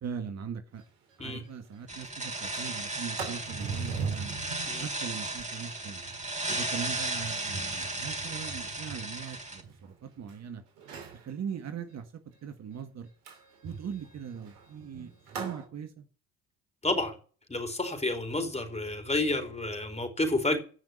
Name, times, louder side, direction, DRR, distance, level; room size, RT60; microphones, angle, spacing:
voice 1, 0.0-0.8 1.2-4.4 4.8-6.0 6.5-10.6 11.1-13.1 13.6-15.1 15.4-16.1, right 7 dB, 50° right, 1.8 m, -40 dB
Sliding door, 0.8-0.9 1.2-1.3 1.6-1.9 2.3-10.3 10.8-11.2 13.2-15.6, right 5 dB, 80° right, 3.1 m, -41 dB
sound 1, 1.9-9.6, right 2 dB, 20° right, 4.0 m, -35 dB
voice 2, 16.8-17.1 17.5-20.6, left 2 dB, 20° left, 4.4 m, -30 dB
16.5 x 6.1 x 8.6 m
hypercardioid pair, 50°, 35 cm